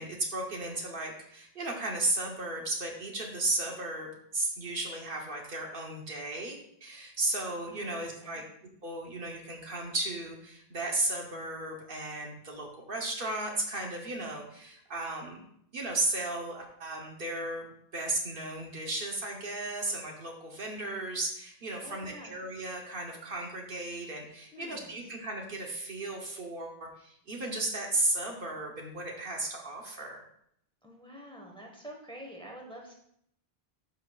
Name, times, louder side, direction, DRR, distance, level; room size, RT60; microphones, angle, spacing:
voice 1, 0.0-8.4 8.8-15.4 15.7-17.6 17.9-30.2, right 2 dB, 60° right, 1 dB, 1.1 m, -35 dB
voice 2, 7.7-8.4 21.8-22.4 24.5-25.1 30.8-32.9, equal, 5° left, 0 dB, 1.1 m, -47 dB
11.5 x 4.5 x 2.3 m, 0.71 s
omnidirectional pair, 1.0 m